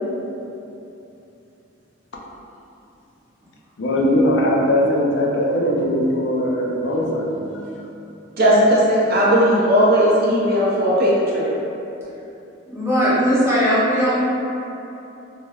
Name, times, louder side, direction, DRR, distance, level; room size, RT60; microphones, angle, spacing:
voice 1, 3.8-7.5, left 1 dB, 60° left, -2 dB, 0.4 m, -20 dB
voice 2, 8.4-11.6, equal, 50° right, -6 dB, 0.7 m, -16 dB
voice 3, 12.7-14.2, equal, 15° right, -10 dB, 0.8 m, -18 dB
3.2 x 3.0 x 2.3 m, 2.9 s
head